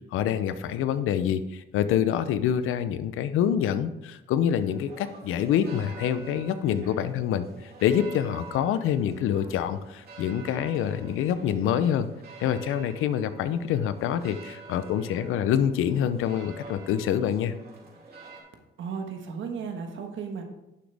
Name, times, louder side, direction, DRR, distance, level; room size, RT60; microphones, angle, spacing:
voice 1, 0.1-12.1 12.4-17.5, left 9 dB, 85° left, 12 dB, 0.7 m, -26 dB
sound 1, 4.6-18.4, right 3 dB, 50° right, 3.2 m, -47 dB
voice 2, 18.8-20.4, right 6 dB, 70° right, 4 dB, 1.4 m, -34 dB
11.0 x 6.3 x 3.5 m, 0.95 s
cardioid pair, 75°, 21 cm